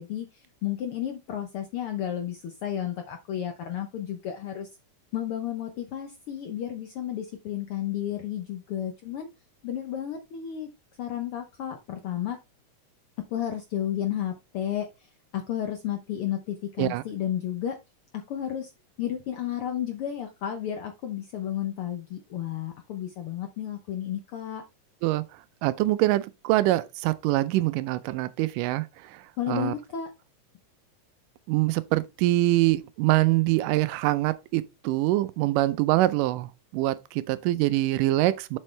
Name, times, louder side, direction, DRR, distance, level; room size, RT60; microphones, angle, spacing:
voice 1, 0.0-4.7 5.1-9.3 9.6-10.7 11.0-12.4 13.3-14.9 15.3-17.8 18.1-18.7 19.0-24.6 29.4-30.1, left 10 dB, 85° left, 1.2 m, -32 dB
voice 2, 25.6-29.7 31.5-38.6, right 17 dB, 90° right, 2.2 m, -24 dB
7.6 x 6.4 x 3.2 m
omnidirectional pair, 3.7 m